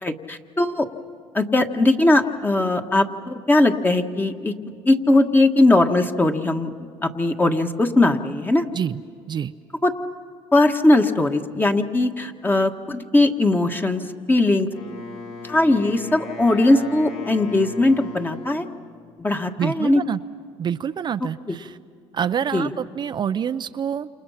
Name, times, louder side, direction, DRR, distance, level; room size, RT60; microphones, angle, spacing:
voice 1, 0.0-0.9 1.3-4.5 4.8-6.7 7.0-8.6 9.8-9.9 10.5-14.0 14.3-14.7 15.4-18.6 19.2-20.0 21.5-21.6 22.5-22.7, left 2 dB, 15° left, 5 dB, 1.7 m, -19 dB
Wind instrument woodwind instrument, 14.7-18.9, left 3 dB, 70° left, 5.3 m, -37 dB
voice 2, 19.6-20.2 20.6-21.8 22.1-24.1, right 8 dB, 40° right, 9 dB, 0.6 m, -26 dB
29.0 x 28.5 x 5.8 m, 2.3 s
supercardioid pair, 95°, 12 cm